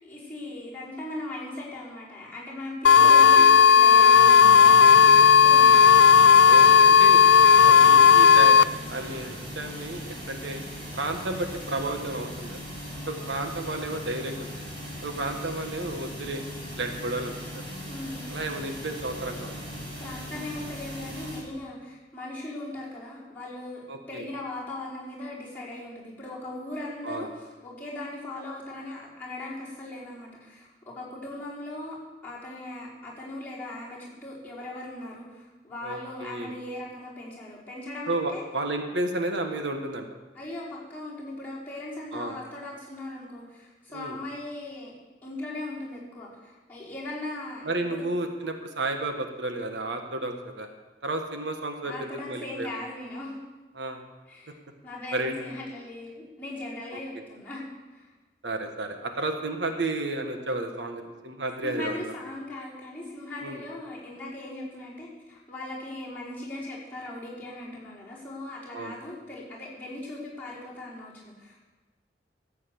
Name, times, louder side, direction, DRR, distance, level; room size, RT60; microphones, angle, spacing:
voice 1, 0.0-6.1 17.9-18.2 20.0-38.4 40.3-44.9 45.2-47.6 47.9-48.0 51.8-53.4 54.3-54.6 54.8-57.6 57.9-58.1 61.6-71.6, left 2 dB, 10° left, -8 dB, 4.9 m, -39 dB
sound 1, 2.8-8.6, left 6 dB, 75° left, 0.4 m, -14 dB
voice 2, 3.0-3.5 6.4-7.2 7.6-10.6 10.9-12.6 13.1-14.5 15.0-16.4 16.8-17.6 18.3-19.6 23.9-24.2 27.0-27.3 35.8-36.5 38.1-40.0 42.1-42.4 43.9-44.2 47.6-50.7 51.0-52.7 53.7-54.0 55.1-55.3 56.9-57.0 58.4-62.1 63.4-63.6 68.7-69.0, right 2 dB, 85° right, 5 dB, 1.4 m, -32 dB
sound 2, 4.3-21.4, equal, 30° right, 4.7 m, -39 dB
14.0 x 8.5 x 7.0 m, 1.2 s
head